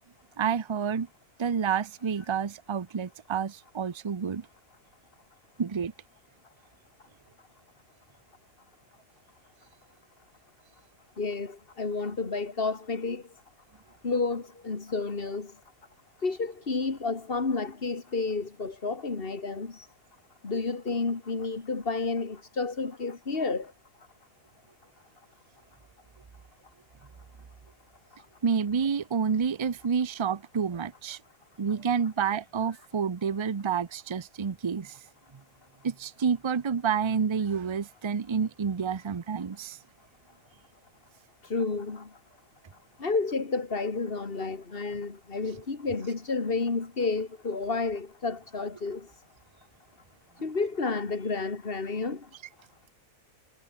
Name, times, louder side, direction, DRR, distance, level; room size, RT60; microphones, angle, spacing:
voice 1, 0.4-1.1 1.4-4.5 5.6-5.9 28.4-31.2 31.6-35.0 35.3-35.4 35.8-39.8, right 6 dB, 40° right, 0.4 m, -29 dB
voice 2, 11.2-13.2 14.0-15.5 16.2-19.9 20.4-23.7 41.4-42.1 43.0-49.0 50.4-52.2, left 4 dB, 40° left, 2.3 m, -31 dB
omnidirectional pair, 1.6 m